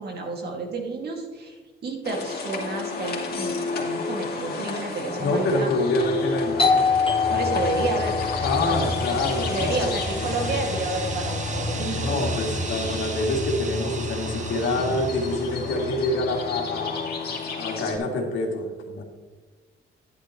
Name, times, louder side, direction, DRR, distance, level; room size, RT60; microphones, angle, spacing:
voice 1, 0.0-5.7 7.3-8.1 8.6-9.1 9.5-12.3 14.8-15.0, right 3 dB, 55° right, 1 dB, 2.3 m, -31 dB
sound 1, 2.0-18.0, left 3 dB, 50° left, 2.6 m, -30 dB
voice 2, 5.2-6.8 8.4-9.9 12.0-17.0 17.6-19.0, left 2 dB, 75° left, 2 dB, 2.0 m, -26 dB
Doorbell, 6.6-12.0, left 5 dB, 30° left, 1.8 m, -27 dB
sound 2, 8.2-16.0, right 7 dB, 40° right, 0.6 m, -39 dB
10.5 x 10.0 x 3.2 m, 1.3 s
cardioid pair, 90°, 20 cm